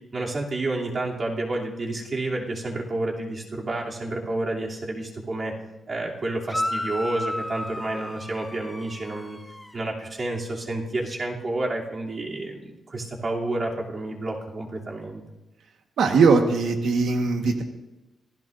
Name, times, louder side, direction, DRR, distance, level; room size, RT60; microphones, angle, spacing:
voice 1, 0.1-5.6 5.9-9.4 9.7-15.2, right 2 dB, 35° right, -3 dB, 2.9 m, -30 dB
sound 1, 6.5-9.7, left 1 dB, 5° left, 0.9 m, -32 dB
voice 2, 16.0-17.6, right 4 dB, 85° right, 4 dB, 1.4 m, -20 dB
25.5 x 16.5 x 2.6 m, 0.97 s
wide cardioid pair, 160°, 0 cm